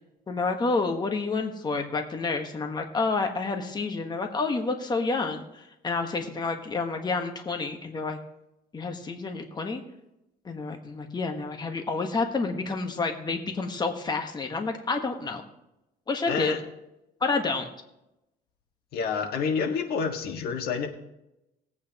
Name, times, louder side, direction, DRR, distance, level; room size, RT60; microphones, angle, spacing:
voice 1, 0.3-8.2 8.7-9.8 10.4-15.4 16.1-16.6 17.2-17.6, left 3 dB, 25° left, 4 dB, 1.3 m, -29 dB
voice 2, 16.3-16.6 18.9-20.9, left 6 dB, 65° left, 3 dB, 1.6 m, -28 dB
19.5 x 8.5 x 3.0 m, 0.90 s
cardioid pair, 110°, 17 cm